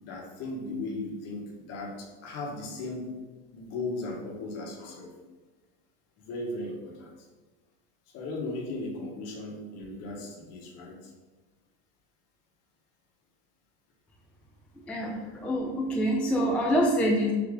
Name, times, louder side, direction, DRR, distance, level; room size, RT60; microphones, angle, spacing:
voice 1, 0.0-3.2 3.5-5.1 6.2-7.1 8.1-11.1, left 2 dB, 50° left, 0 dB, 1.2 m, -37 dB
voice 2, 14.9-17.3, equal, 5° left, -1 dB, 0.4 m, -26 dB
4.8 x 2.9 x 3.7 m, 1.3 s
supercardioid pair, 130°, 32 cm